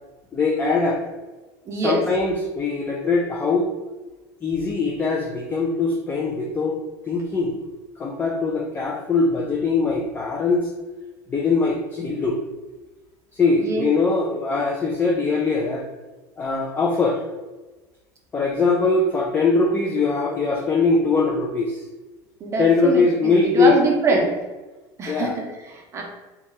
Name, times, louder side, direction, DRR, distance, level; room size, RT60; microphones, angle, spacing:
voice 1, 0.3-1.0 1.8-3.7 4.4-6.8 7.0-7.6 8.0-10.7 11.3-12.4 13.3-15.8 16.4-17.2 18.3-21.8 22.6-23.7 24.1-24.2 25.1-25.4, left 4 dB, 20° left, -1 dB, 0.4 m, -21 dB
voice 2, 1.7-2.0 13.6-13.9 22.4-24.3 25.0-26.0, right 3 dB, 30° right, 0 dB, 0.7 m, -24 dB
2.8 x 2.3 x 3.3 m, 1.2 s
supercardioid pair, 125°, 10 cm